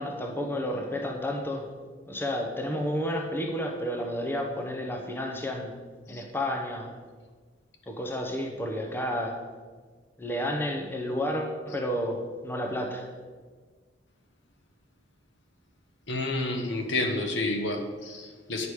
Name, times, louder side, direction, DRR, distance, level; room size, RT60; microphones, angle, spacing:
voice 1, 0.0-1.7 2.1-5.7 6.1-6.9 7.9-9.4 10.2-13.1, equal, 10° left, 2 dB, 0.7 m, -31 dB
voice 2, 16.1-18.7, left 2 dB, 75° left, 3 dB, 1.1 m, -30 dB
9.8 x 5.1 x 4.8 m, 1.5 s
head